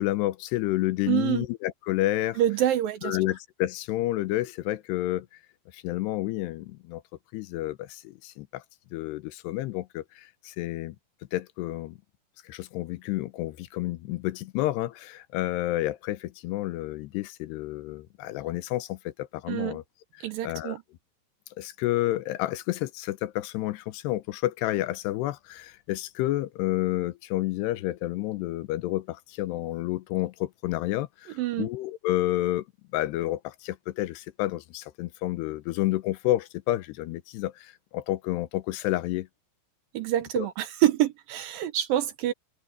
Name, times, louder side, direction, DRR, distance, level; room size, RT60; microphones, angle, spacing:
voice 1, 0.0-2.4 3.0-5.3 5.7-7.0 7.3-8.6 8.9-11.0 11.3-12.0 12.4-19.8 20.4-20.8 21.6-32.6 32.9-39.3 40.4-40.5, left 16 dB, 85° left, 2.9 m, -30 dB
voice 2, 1.1-1.4 2.4-3.2 19.5-19.8 20.2-20.8 31.4-31.7 39.9-42.3, right 12 dB, 70° right, 2.4 m, -26 dB
open air
omnidirectional pair, 4.7 m